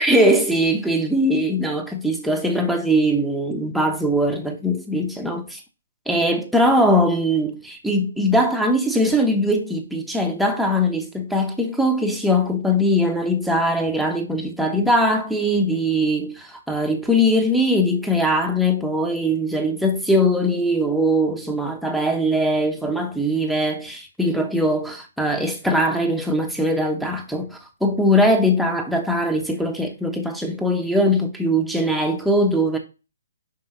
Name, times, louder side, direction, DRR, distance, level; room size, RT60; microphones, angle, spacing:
voice 1, 0.0-5.6 6.1-32.8, equal, ahead, 1.0 m, -21 dB
5.5 x 5.1 x 3.9 m
hypercardioid pair, 145°, 0 cm